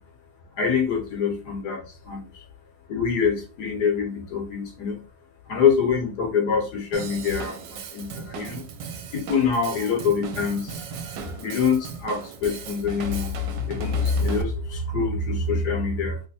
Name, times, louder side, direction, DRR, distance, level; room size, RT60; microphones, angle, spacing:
voice 1, 0.5-2.4 2.9-5.0 5.5-8.7 9.1-16.2, left 6 dB, 65° left, 2 dB, 1.2 m, -25 dB
Drum kit / Drum, 6.9-14.4, right 7 dB, 75° right, 1.1 m, -37 dB
3.1 x 3.1 x 2.7 m, 0.35 s
omnidirectional pair, 2.0 m